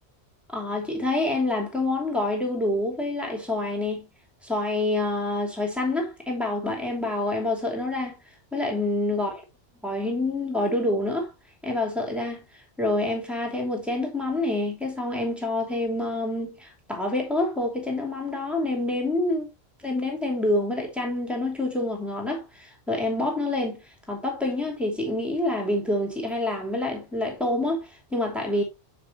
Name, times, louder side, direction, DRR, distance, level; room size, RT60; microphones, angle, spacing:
voice 1, 0.5-4.1 4.4-8.2 8.5-9.4 9.8-11.3 11.6-12.4 12.8-19.5 19.8-23.8 24.1-28.6, left 2 dB, ahead, 3.0 m, -27 dB
7.4 x 6.9 x 3.0 m
omnidirectional pair, 1.1 m